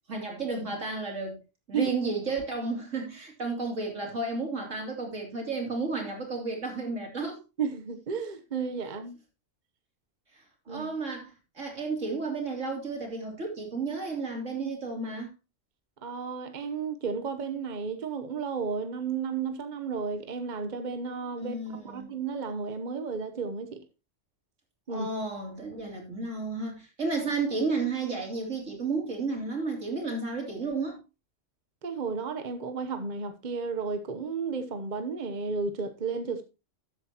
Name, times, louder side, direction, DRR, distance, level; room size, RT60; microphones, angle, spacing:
voice 1, 0.1-1.4 1.7-7.4 8.8-8.9 10.3-15.3 21.4-22.1 24.9-31.0, right 3 dB, 80° right, 3.5 m, -32 dB
voice 2, 7.6-9.2 10.7-10.9 16.0-23.8 24.9-25.1 31.8-36.4, right 5 dB, 40° right, 1.0 m, -33 dB
13.0 x 8.2 x 2.9 m
omnidirectional pair, 1.3 m